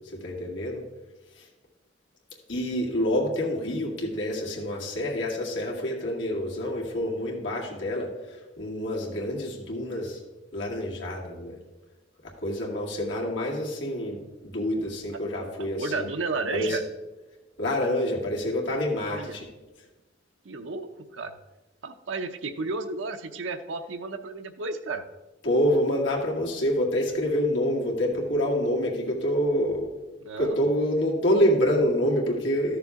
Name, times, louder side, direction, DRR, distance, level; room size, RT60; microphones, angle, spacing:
voice 1, 0.1-0.8 2.5-8.1 8.6-10.2 10.5-11.6 12.4-16.1 16.5-16.8 17.6-19.5 25.4-29.9 30.4-32.8, equal, 75° left, -2 dB, 2.2 m, -27 dB
voice 2, 15.8-16.8 19.1-19.4 20.4-20.9 21.1-21.3 21.8-25.0 30.2-30.6, right 3 dB, 80° right, 7 dB, 0.7 m, -32 dB
13.0 x 6.8 x 3.6 m, 1.1 s
head